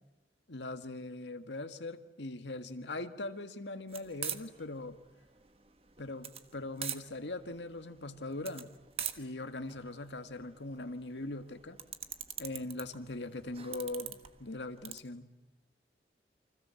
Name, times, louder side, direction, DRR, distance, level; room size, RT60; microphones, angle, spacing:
voice 1, 0.5-5.0 6.0-8.7 9.2-11.8 12.4-15.3, left 2 dB, 85° left, 9 dB, 1.8 m, -41 dB
sound 1, 3.9-15.0, right 9 dB, 35° right, 1.4 m, -44 dB
29.5 x 25.0 x 7.1 m, 0.98 s
head